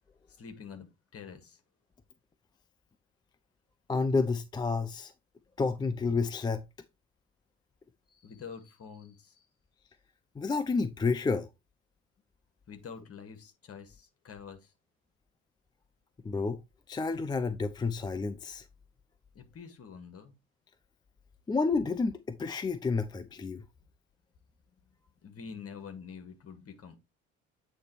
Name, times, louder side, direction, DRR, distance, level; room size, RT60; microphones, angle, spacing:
voice 1, 0.4-1.6 8.1-9.4 12.7-14.7 19.3-20.3 25.2-26.9, left 6 dB, 35° left, 1.5 m, -46 dB
voice 2, 3.9-5.1 5.6-6.6 10.4-11.5 16.2-16.6 16.9-18.6 21.5-23.6, left 4 dB, 10° left, 0.4 m, -30 dB
8.3 x 3.2 x 4.5 m
figure-of-eight pair, 55°, 40 cm